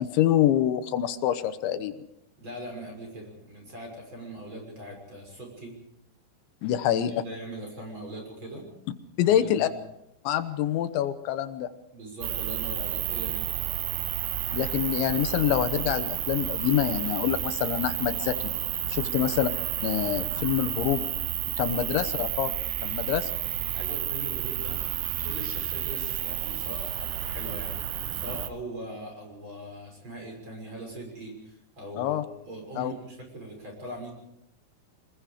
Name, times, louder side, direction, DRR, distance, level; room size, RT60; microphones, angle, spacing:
voice 1, 0.0-1.9 6.6-7.2 9.2-9.7 10.2-11.7 14.5-18.4 18.9-19.5 19.8-21.0 21.6-22.5 22.8-23.3 32.0-32.2 32.8-32.9, left 11 dB, 85° left, 11 dB, 3.2 m, -26 dB
voice 2, 2.4-5.8 6.6-8.6 9.2-9.7 11.9-13.5 19.0-19.3 21.8-21.9 23.7-24.8 25.2-27.7 28.1-32.2 32.4-34.1, right 1 dB, 25° right, 1 dB, 6.7 m, -41 dB
sound 1, 12.2-28.5, right 12 dB, 75° right, 3.1 m, -31 dB
25.5 x 20.5 x 4.9 m, 0.81 s
omnidirectional pair, 5.2 m